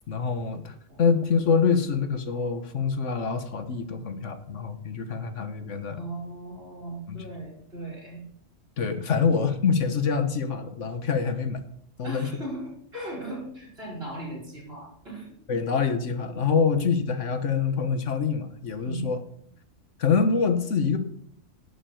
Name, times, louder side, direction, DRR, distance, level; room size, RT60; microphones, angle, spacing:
voice 1, 0.1-6.0 7.1-7.2 8.8-11.6 12.0-12.3 15.5-19.2 20.0-21.0, left 5 dB, 70° left, 9 dB, 1.5 m, -25 dB
voice 2, 6.0-8.2 9.0-9.4 12.0-15.3 18.8-19.1, right 1 dB, 50° right, -4 dB, 5.3 m, -38 dB
11.5 x 7.1 x 8.4 m, 0.68 s
omnidirectional pair, 1.3 m